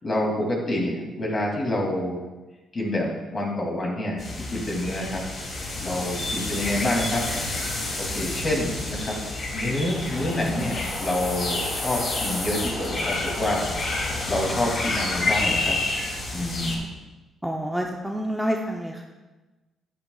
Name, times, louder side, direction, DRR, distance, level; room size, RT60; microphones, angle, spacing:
voice 1, 0.0-2.2 2.7-5.2 5.8-7.2 8.0-9.2 9.5-13.6 14.2-15.8 16.3-16.9, left 1 dB, 35° left, -1 dB, 2.7 m, -27 dB
sound 1, 4.2-16.8, left 2 dB, 55° left, 2.8 m, -29 dB
voice 2, 17.4-19.0, equal, 5° right, 1 dB, 0.7 m, -28 dB
10.0 x 9.9 x 2.4 m, 1.2 s
cardioid pair, 90°, 0 cm